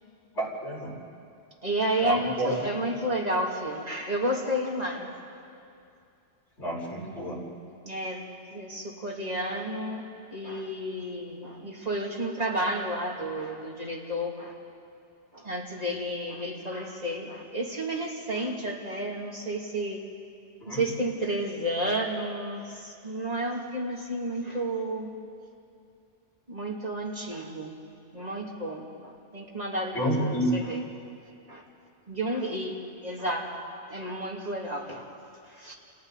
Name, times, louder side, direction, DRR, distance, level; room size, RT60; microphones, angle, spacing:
voice 1, 0.4-0.9 2.0-2.5 6.6-7.4 20.6-20.8 29.9-30.5, right 1 dB, 65° left, -4 dB, 5.5 m, -29 dB
voice 2, 1.6-5.1 7.8-14.5 15.3-20.0 20.7-25.2 26.5-27.7 28.1-30.8 31.5-31.6 32.1-32.7 33.0-33.5 33.9-35.1 35.5-35.7, right 1 dB, 35° right, -2 dB, 3.0 m, -31 dB
29.0 x 28.5 x 4.1 m, 2.5 s
omnidirectional pair, 1.2 m